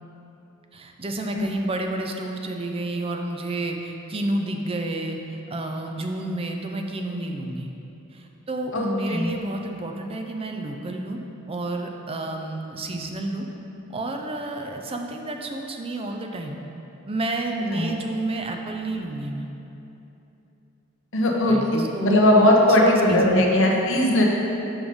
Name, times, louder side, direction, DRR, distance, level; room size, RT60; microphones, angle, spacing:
voice 1, 0.7-7.7 8.1-11.2 11.5-13.5 13.9-16.6 17.1-19.5 21.5-22.2 22.7-23.5, right 2 dB, 25° right, 3 dB, 0.5 m, -30 dB
voice 2, 8.7-9.3 17.7-17.9 21.1-24.2, left 1 dB, 60° left, -1 dB, 1.0 m, -19 dB
7.1 x 5.4 x 5.2 m, 2.9 s
head